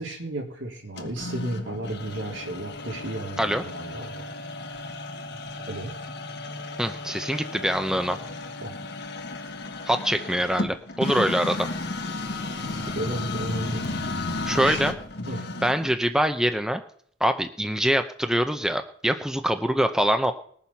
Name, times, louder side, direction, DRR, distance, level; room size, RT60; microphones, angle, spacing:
voice 1, 0.0-4.3 5.7-5.9 8.6-8.8 12.9-13.9 14.6-14.8 15.3-15.4, right 1 dB, 70° right, 1 dB, 3.2 m, -33 dB
sound 1, 1.0-16.0, left 2 dB, 60° left, 1.5 m, -34 dB
voice 2, 6.8-8.2 9.9-11.7 14.4-14.9 15.6-16.8 17.2-20.3, equal, 5° right, 7 dB, 0.6 m, -24 dB
20.0 x 7.1 x 5.9 m, 0.62 s
head